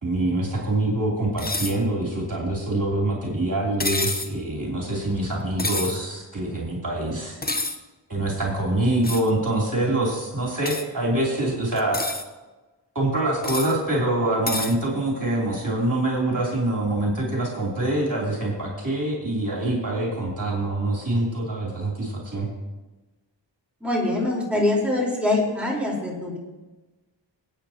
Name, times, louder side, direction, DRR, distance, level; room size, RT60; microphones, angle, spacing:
voice 1, 0.0-7.4 8.1-12.0 12.9-22.5, right 1 dB, 45° right, -4 dB, 3.4 m, -25 dB
sound 1, 1.4-1.8 3.8-4.3 5.6-6.0 7.4-7.8 9.0-9.3 10.6-10.8 11.8-12.2 13.4-13.7 14.5-14.7, left 2 dB, 20° left, 1.0 m, -28 dB
voice 2, 23.8-26.4, left 2 dB, 5° right, -4 dB, 4.4 m, -24 dB
23.0 x 8.9 x 3.0 m, 1.2 s
wide cardioid pair, 50°, 44 cm